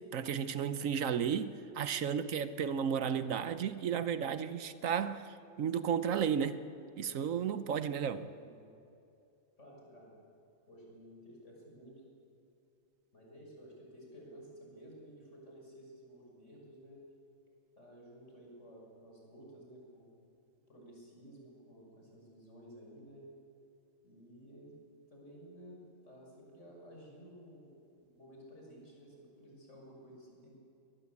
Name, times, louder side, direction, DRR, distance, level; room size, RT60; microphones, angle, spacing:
voice 1, 0.1-6.6 7.0-8.3, right 7 dB, 75° right, 1.2 m, -33 dB
voice 2, 8.4-8.7 9.6-10.1 10.7-12.0 13.1-17.0 17.8-20.1 20.7-23.2 24.0-24.8 25.1-27.7 28.1-30.6, equal, 60° left, 6.7 m, -54 dB
23.5 x 19.5 x 8.5 m
omnidirectional pair, 1.4 m